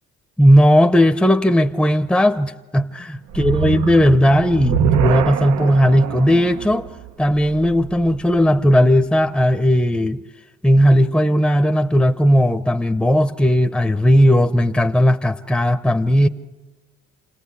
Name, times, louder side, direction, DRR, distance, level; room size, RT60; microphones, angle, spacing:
voice 1, 0.4-6.9 7.2-10.2 10.6-16.3, equal, 5° left, 8 dB, 0.7 m, -16 dB
sound 1, 3.3-8.6, right 8 dB, 90° right, 0.9 m, -24 dB
28.0 x 18.0 x 8.4 m, 1.2 s
cardioid pair, 90°, 30 cm